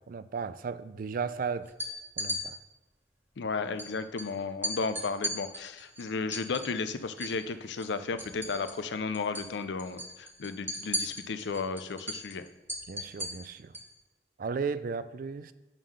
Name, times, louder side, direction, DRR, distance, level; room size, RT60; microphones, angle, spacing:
voice 1, 0.1-1.7 2.2-2.6 12.9-13.7 14.4-15.5, right 5 dB, 50° right, 14 dB, 0.4 m, -35 dB
sound 1, 1.7-2.4 3.8-3.9 4.2-4.3 4.6-7.4 7.7-8.9 9.1-9.5 9.8-13.9, equal, 15° right, 1.3 m, -36 dB
voice 2, 3.4-12.4, left 4 dB, 85° left, 11 dB, 0.5 m, -34 dB
9.0 x 3.8 x 6.2 m, 1.0 s
head